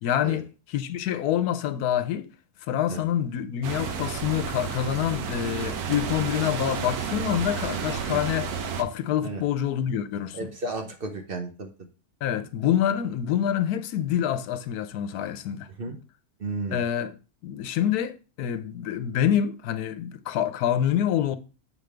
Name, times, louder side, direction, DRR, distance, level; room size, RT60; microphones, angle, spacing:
voice 1, 0.0-2.3 2.7-10.5 12.2-15.7 16.7-17.2 17.4-21.4, left 10 dB, 90° left, 1.1 m, -26 dB
sound 1, 3.6-8.8, right 6 dB, 80° right, 1.3 m, -31 dB
voice 2, 10.3-11.7 15.8-16.0 16.4-16.8, right 3 dB, 50° right, 0.8 m, -33 dB
7.1 x 5.1 x 3.2 m
omnidirectional pair, 1.6 m